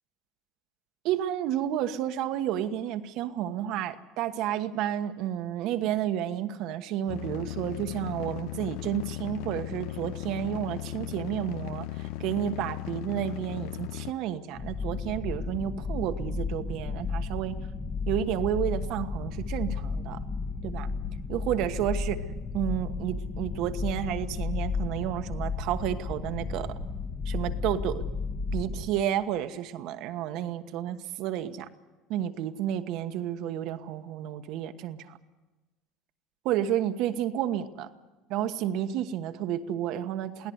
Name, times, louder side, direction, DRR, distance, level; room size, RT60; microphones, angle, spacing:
voice 1, 1.0-17.6 18.1-20.2 20.6-20.9 21.3-22.2 22.5-26.8 27.2-28.0 28.5-31.7 32.1-35.2 36.4-37.9 38.3-40.5, right 11 dB, 65° right, 9 dB, 1.3 m, -31 dB
sound 1, 7.1-14.1, left 15 dB, 75° left, 0.7 m, -37 dB
sound 2, 14.5-28.9, left 4 dB, 35° left, 1.7 m, -33 dB
sound 3, 21.9-24.9 25.2-27.1, right 7 dB, 90° right, 1.3 m, -45 dB
23.0 x 17.0 x 8.0 m, 1.2 s
supercardioid pair, 105°, 0 cm